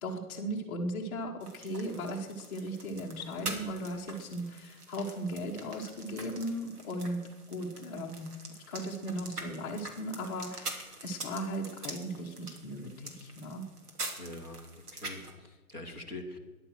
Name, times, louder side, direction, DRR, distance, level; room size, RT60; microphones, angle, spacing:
voice 1, 0.0-7.2 7.5-8.3 8.7-13.6, equal, 15° left, -2 dB, 1.2 m, -37 dB
sound 1, 1.4-15.3, right 2 dB, 80° right, 3.1 m, -45 dB
voice 2, 14.2-16.4, left 2 dB, 10° right, 1 dB, 0.9 m, -44 dB
13.0 x 11.0 x 6.3 m, 1.2 s
hypercardioid pair, 165°, 45 cm